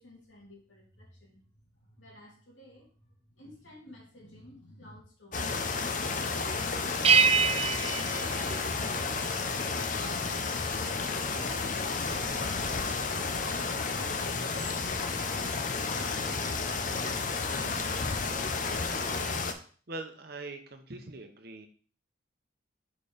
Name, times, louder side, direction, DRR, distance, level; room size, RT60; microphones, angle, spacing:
voice 1, 0.0-1.4 1.7-7.6, left 1 dB, 75° left, -2 dB, 2.5 m, -54 dB
sound 1, 5.3-19.5, left 4 dB, 40° left, 0.6 m, -31 dB
sound 2, 7.0-9.3, right 6 dB, 30° right, 0.3 m, -26 dB
voice 2, 19.9-21.7, right 2 dB, 50° right, 6 dB, 0.8 m, -43 dB
4.9 x 4.4 x 5.1 m, 0.42 s
head